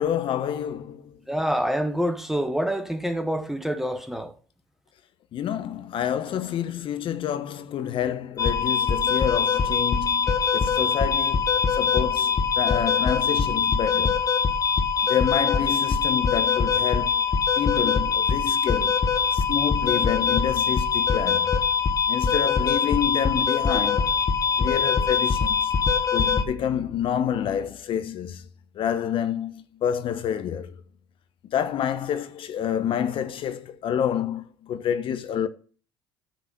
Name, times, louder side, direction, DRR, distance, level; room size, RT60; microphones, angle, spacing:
voice 1, 0.0-1.2 5.3-14.2 15.1-17.2 17.6-19.0 19.3-21.5 22.1-24.1 24.6-25.7 26.1-28.4 28.7-30.7 31.5-35.5, left 9 dB, 50° left, 1.0 m, -28 dB
voice 2, 1.3-4.3, equal, 5° right, 1.0 m, -26 dB
sound 1, 8.4-26.4, left 6 dB, 30° left, 1.3 m, -23 dB
10.0 x 4.1 x 6.8 m
hypercardioid pair, 70°, 11 cm